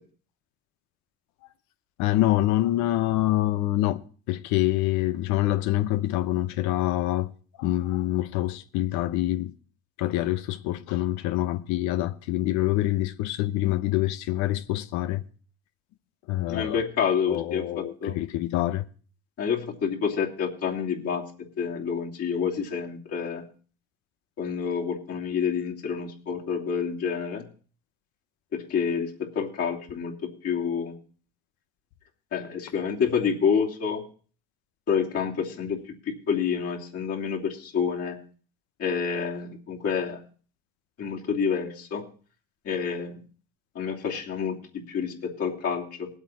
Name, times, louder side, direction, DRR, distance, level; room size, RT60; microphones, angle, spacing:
voice 1, 2.0-4.0 4.3-7.3 7.6-9.6 10.0-15.2 16.3-16.8 17.3-18.8, left 15 dB, 75° left, 0.9 m, -26 dB
voice 2, 16.5-18.2 19.4-21.2 21.6-23.4 24.4-27.4 28.5-30.9 32.3-34.0 34.9-35.8 36.1-38.2 38.8-40.2 41.0-42.0 42.6-43.2 43.7-46.1, left 6 dB, 55° left, 3.0 m, -28 dB
19.0 x 8.1 x 4.3 m
supercardioid pair, 90°, 29 cm